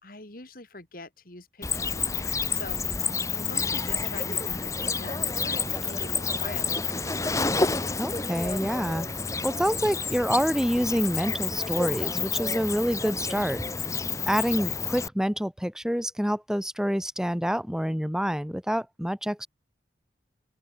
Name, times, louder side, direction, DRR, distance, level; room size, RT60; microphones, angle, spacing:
voice 1, 0.0-7.4, left 2 dB, 50° left, 2.9 m, -44 dB
Cricket, 1.6-15.1, left 4 dB, 15° left, 0.7 m, -29 dB
sound 1, 5.0-11.1, right 2 dB, 75° right, 7.7 m, -49 dB
voice 2, 8.0-9.1 9.4-13.6 14.3-19.5, equal, 5° right, 1.2 m, -27 dB
open air
head